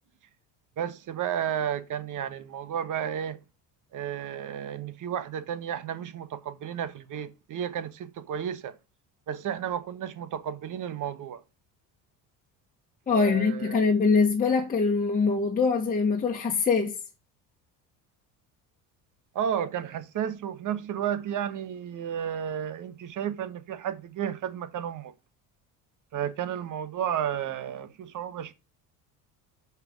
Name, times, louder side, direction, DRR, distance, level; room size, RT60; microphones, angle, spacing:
voice 1, 0.8-3.4 3.9-8.8 9.3-11.4 13.1-13.8 19.3-25.1 26.1-28.5, right 9 dB, 50° right, 1.2 m, -32 dB
voice 2, 13.1-17.0, left 4 dB, 20° left, 1.5 m, -23 dB
5.9 x 5.5 x 6.1 m
cardioid pair, 105°, 40 cm